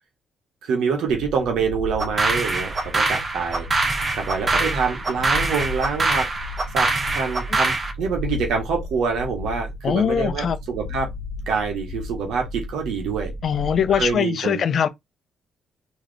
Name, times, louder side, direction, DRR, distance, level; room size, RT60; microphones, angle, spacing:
voice 1, 0.6-3.8 4.1-11.1 11.5-13.3 13.9-14.6, right 5 dB, 85° right, 1.2 m, -26 dB
sound 1, 1.1-14.2, left 1 dB, 25° left, 1.6 m, -34 dB
sound 2, 2.0-7.9, right 3 dB, 35° right, 1.2 m, -24 dB
voice 2, 9.8-10.6 13.4-14.9, left 8 dB, 55° left, 0.6 m, -21 dB
3.9 x 3.0 x 3.3 m
cardioid pair, 90°, 0 cm